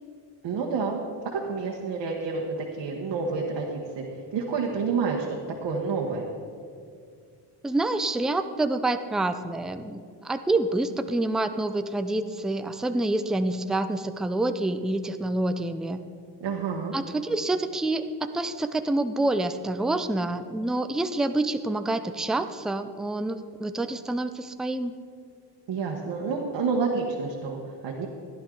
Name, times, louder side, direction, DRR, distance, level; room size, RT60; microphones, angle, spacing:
voice 1, 0.4-1.0 1.3-4.0 4.3-5.4 5.6-6.2 16.4-16.9 25.7-28.1, right 5 dB, 75° right, -1 dB, 1.3 m, -29 dB
voice 2, 7.6-16.0 16.9-25.0, right 2 dB, ahead, 8 dB, 0.3 m, -27 dB
15.0 x 11.0 x 3.8 m, 2.3 s
cardioid pair, 120°, 42 cm